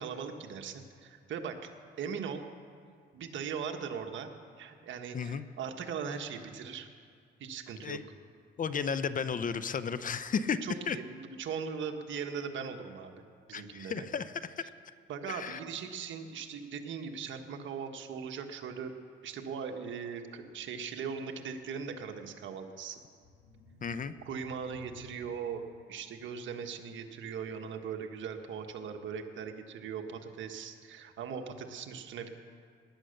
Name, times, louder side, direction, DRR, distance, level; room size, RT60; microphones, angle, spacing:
voice 1, 0.0-1.6 2.0-2.4 3.1-4.3 4.6-6.9 7.4-8.0 10.6-13.1 13.5-14.1 15.1-18.9 19.2-23.0 24.2-25.6 25.9-32.3, right 6 dB, 70° right, 5 dB, 1.4 m, -39 dB
voice 2, 5.1-5.5 7.8-8.0 8.6-10.6 10.9-11.0 13.5-14.7 15.3-15.6 23.8-24.1, left 6 dB, 40° left, 13 dB, 0.7 m, -33 dB
sound 1, 21.7-26.3, left 5 dB, 75° left, 1.6 m, -57 dB
18.5 x 10.0 x 6.6 m, 2.2 s
cardioid pair, 90°, 20 cm